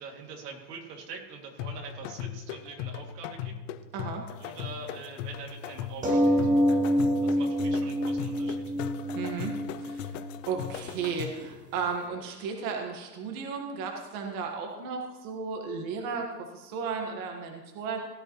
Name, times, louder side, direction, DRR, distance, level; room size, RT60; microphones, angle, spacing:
voice 1, 0.0-3.6 4.4-6.4 7.2-8.6, right 5 dB, 80° right, 1 dB, 2.7 m, -44 dB
sound 1, 1.6-11.5, left 10 dB, 55° left, 0.7 m, -39 dB
voice 2, 3.9-4.3 9.2-10.1 10.5-16.3 16.5-18.0, right 5 dB, 45° right, 2 dB, 1.7 m, -34 dB
sound 2, 6.0-11.1 11.4-11.8, equal, 15° right, 1.5 m, -27 dB
17.5 x 10.5 x 3.2 m, 1.2 s
supercardioid pair, 135°, 47 cm